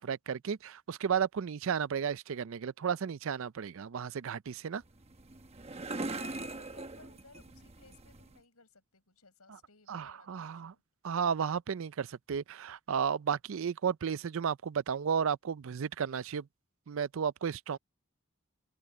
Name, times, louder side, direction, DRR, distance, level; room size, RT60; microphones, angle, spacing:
voice 1, 0.0-4.8 9.9-10.7 11.0-16.5 16.9-17.8, right 7 dB, 60° right, 0.4 m, -33 dB
sound 1, 4.8-8.4, right 2 dB, 30° right, 1.0 m, -41 dB
voice 2, 6.0-10.8, left 3 dB, 85° left, 6.8 m, -59 dB
head